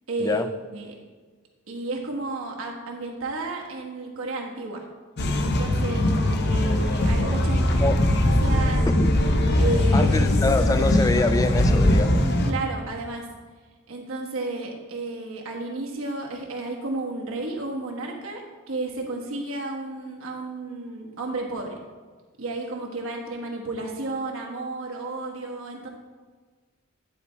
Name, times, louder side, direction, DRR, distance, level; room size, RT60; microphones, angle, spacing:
voice 1, 0.1-0.4 0.7-0.9 1.7-4.8 5.4-7.8 8.4-8.9 9.6-10.3 12.2-13.2 13.9-18.4 18.7-21.8 22.4-25.9, right 2 dB, 85° right, 0 dB, 1.3 m, -32 dB
sound 1, 5.2-12.5, left 1 dB, 55° left, 0.7 m, -21 dB
voice 2, 9.9-12.3, left 2 dB, 15° left, 10 dB, 0.3 m, -25 dB
10.0 x 4.1 x 4.5 m, 1.4 s
head